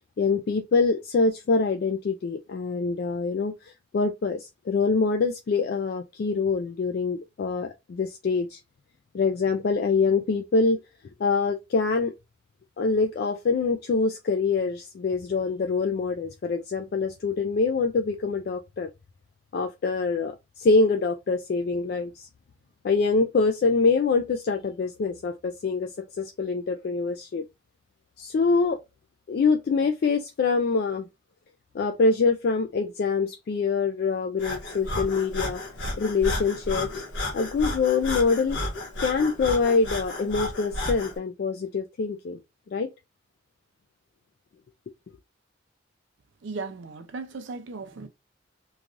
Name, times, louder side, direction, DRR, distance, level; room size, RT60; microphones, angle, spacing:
voice 1, 0.2-8.6 9.1-10.8 11.2-12.1 12.8-18.9 19.5-22.3 22.8-25.9 26.2-27.4 28.2-28.8 29.3-31.0 31.7-35.6 36.0-37.0 37.3-38.6 39.0-42.4 42.7-42.9, left 4 dB, 50° left, 0.3 m, -25 dB
Breathing, 34.4-41.2, left 1 dB, 70° left, 1.1 m, -32 dB
voice 2, 46.4-48.1, right 4 dB, 75° right, 0.5 m, -36 dB
3.1 x 2.3 x 2.5 m
head